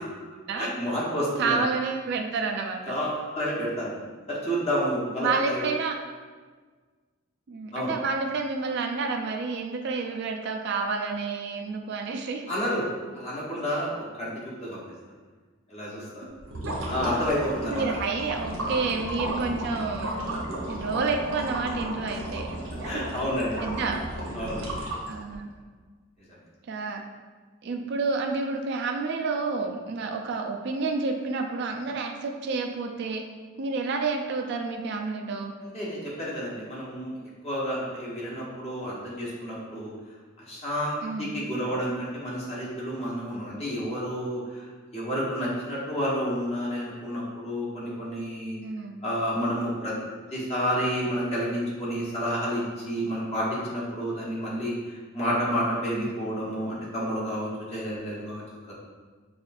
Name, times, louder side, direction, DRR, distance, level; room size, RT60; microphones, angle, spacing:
voice 1, 0.6-1.6 2.9-3.9 4.3-5.6 7.7-7.9 12.5-14.3 14.6-14.8 15.7-16.2 16.9-17.8 22.8-23.7 24.3-24.6 35.6-37.2 37.4-39.9 40.4-48.6 49.0-49.9 50.3-58.7, equal, 30° left, -6 dB, 1.0 m, -30 dB
voice 2, 1.4-3.0 5.2-5.9 7.5-12.5 16.2-16.4 16.7-16.8 17.6-22.5 22.8-23.0 23.6-24.0 25.1-25.5 26.7-27.0 27.6-33.2 33.6-35.5 41.0-41.4 48.6-49.0 55.9-56.1, right 4 dB, 55° right, 3 dB, 0.3 m, -29 dB
sound 1, 16.4-25.4, right 1 dB, 85° right, 0.9 m, -33 dB
5.6 x 2.4 x 2.5 m, 1.4 s
head